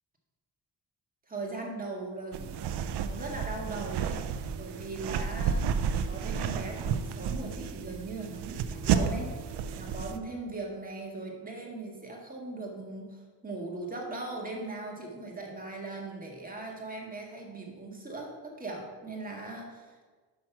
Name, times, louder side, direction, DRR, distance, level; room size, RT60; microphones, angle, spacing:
voice 1, 1.3-4.2 4.5-9.3 9.7-20.1, right 2 dB, 20° right, -1 dB, 1.9 m, -39 dB
sound 1, 2.3-10.2, right 7 dB, 80° right, 0.6 m, -32 dB
6.1 x 6.0 x 5.8 m, 1.4 s
cardioid pair, 90°, 40 cm